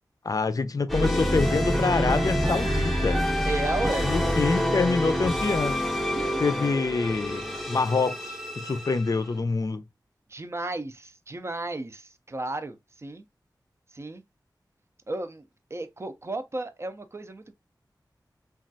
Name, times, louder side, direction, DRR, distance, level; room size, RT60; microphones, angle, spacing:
voice 1, 0.2-3.2 4.0-5.8 6.4-9.8, left 4 dB, 50° left, 0.4 m, -26 dB
sound 1, 0.9-9.3, equal, ahead, 0.7 m, -27 dB
voice 2, 3.4-4.5 6.1-6.4 10.3-13.2 13.9-14.2 15.1-17.5, right 2 dB, 35° right, 0.5 m, -34 dB
3.1 x 2.3 x 2.6 m
wide cardioid pair, 65°, 8 cm